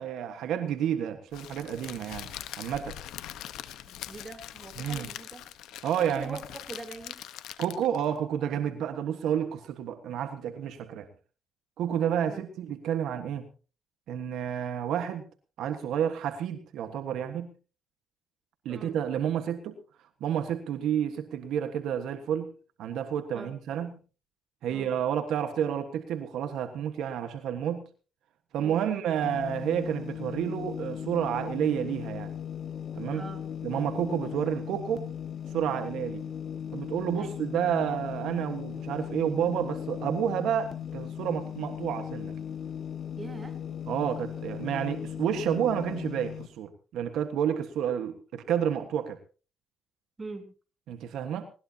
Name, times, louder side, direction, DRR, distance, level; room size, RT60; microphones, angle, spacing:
voice 1, 0.0-2.3 2.6-3.0 4.8-5.1 5.8-6.4 7.6-11.1 11.8-13.5 14.1-15.3 15.6-17.5 18.6-19.7 20.2-22.5 22.8-24.0 24.6-27.8 28.5-32.3 32.9-33.2 33.6-35.1 35.5-36.2 36.7-42.3 43.9-49.2 50.9-51.4, right 9 dB, 80° right, 8 dB, 1.5 m, -30 dB
Crackle, 1.3-8.1, left 12 dB, 90° left, 1.1 m, -42 dB
voice 2, 3.8-5.4 6.1-7.2 12.3-12.4 18.7-19.0 23.3-23.5 24.7-24.9 28.6-28.8 33.1-33.4 37.2-37.4 43.2-43.6 50.2-50.5, right 3 dB, 25° right, 5 dB, 3.6 m, -43 dB
sound 1, 29.2-46.5, left 9 dB, 60° left, 1.8 m, -37 dB
20.0 x 19.0 x 2.9 m, 0.36 s
cardioid pair, 90°, 0 cm